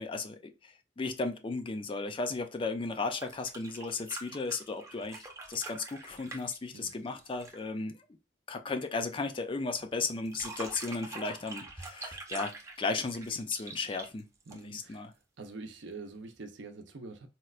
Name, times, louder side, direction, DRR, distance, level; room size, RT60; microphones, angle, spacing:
voice 1, 0.0-8.0 8.5-12.5 12.8-14.2 14.5-15.1, left 3 dB, 30° left, 0.4 m, -35 dB
sound 1, 3.0-7.7 10.1-15.0 16.4-16.5, right 3 dB, 15° right, 0.6 m, -45 dB
voice 2, 14.5-15.0 15.4-17.3, right 3 dB, 70° right, 0.6 m, -45 dB
4.2 x 2.1 x 2.4 m
head